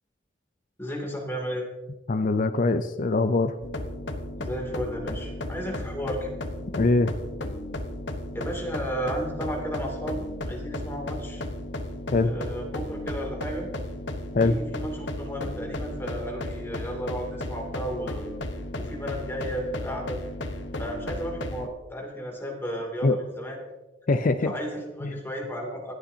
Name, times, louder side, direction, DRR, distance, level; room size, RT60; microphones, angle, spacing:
voice 1, 0.8-1.7 4.4-6.3 8.3-11.4 12.2-13.7 14.4-18.3 18.8-20.2 20.8-23.6 24.4-25.9, equal, 15° left, -1 dB, 2.7 m, -33 dB
voice 2, 2.1-3.6 6.7-7.1 12.1-12.3 14.3-14.6 23.0-23.2 24.1-24.5 25.0-25.1, left 3 dB, 45° left, 9 dB, 0.5 m, -22 dB
sound 1, 3.6-21.7, left 1 dB, 70° left, 1.1 m, -34 dB
26.0 x 8.8 x 2.8 m, 1.1 s
head